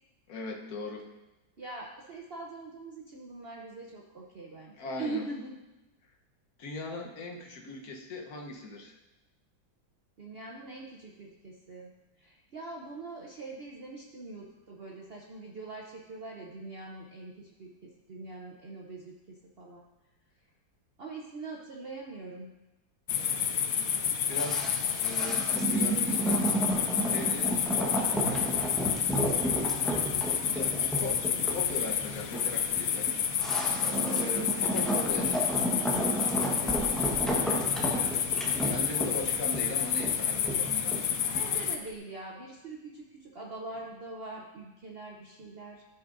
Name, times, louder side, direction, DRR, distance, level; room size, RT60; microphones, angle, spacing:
voice 1, 0.3-1.0 4.8-5.2 6.6-8.9 24.3-24.7 25.0-26.6 27.1-28.6 30.5-33.1 34.1-35.6 37.8-41.2, left 3 dB, 55° left, 1 dB, 1.4 m, -39 dB
voice 2, 1.6-5.6 10.2-11.9 12.2-19.8 21.0-22.5 27.1-27.3 29.9-30.9 33.7-34.1 36.6-37.1 41.2-45.8, right 3 dB, 80° right, -1 dB, 0.5 m, -43 dB
sound 1, 23.1-41.8, left 8 dB, 75° left, 0.8 m, -30 dB
sound 2, 24.3-41.6 41.9-42.0, right 1 dB, ahead, 0.8 m, -32 dB
12.5 x 7.0 x 2.6 m, 1.0 s
omnidirectional pair, 2.1 m